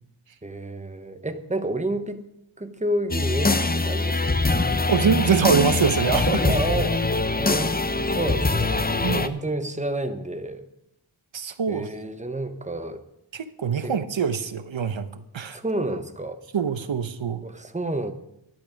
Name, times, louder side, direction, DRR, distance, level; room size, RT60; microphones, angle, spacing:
voice 1, 0.4-2.2 2.6-4.6 6.5-7.1 7.4-10.7 11.7-13.0 13.8-14.0 15.5-16.4 17.4-18.1, right 1 dB, 15° right, 8 dB, 1.0 m, -30 dB
sound 1, 3.1-9.3, left 3 dB, 20° left, 0.6 m, -23 dB
voice 2, 4.9-6.5 9.0-9.4 11.3-11.9 13.3-15.1 15.3-15.6 16.5-17.4, right 6 dB, 75° right, 12 dB, 0.9 m, -24 dB
12.0 x 10.5 x 5.2 m, 0.83 s
wide cardioid pair, 75°, 47 cm